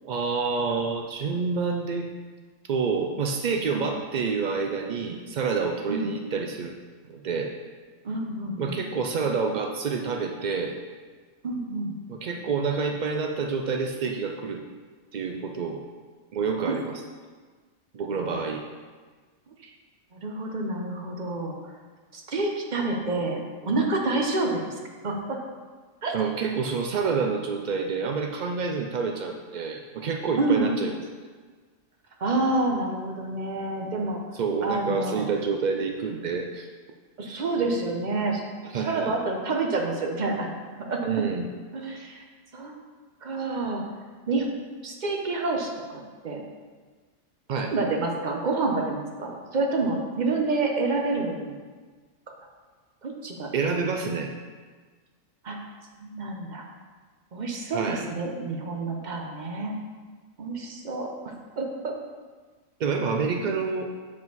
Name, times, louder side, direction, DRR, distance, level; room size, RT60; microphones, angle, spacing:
voice 1, 0.0-2.1 2.7-6.7 7.1-7.5 8.6-10.8 12.1-14.6 15.1-15.8 16.3-16.9 17.9-18.6 19.6-19.7 26.1-30.9 34.3-36.7 38.7-39.2 41.0-41.5 47.5-47.7 53.5-54.3 57.7-58.0 62.8-63.9, right 5 dB, 80° right, 3 dB, 0.4 m, -28 dB
voice 2, 8.0-8.8 11.4-11.9 16.7-16.8 20.1-21.6 22.1-24.6 25.0-25.4 26.0-26.1 30.4-30.8 32.2-34.2 34.6-35.3 37.2-40.5 40.8-41.0 41.7-42.2 42.5-42.7 43.2-43.8 44.3-44.5 44.8-46.4 47.7-51.5 53.0-53.5 55.4-55.6 56.0-56.6 57.3-59.7 60.4-61.9, right 3 dB, 40° right, 1 dB, 0.8 m, -28 dB
7.4 x 4.8 x 4.0 m, 1.5 s
omnidirectional pair, 1.4 m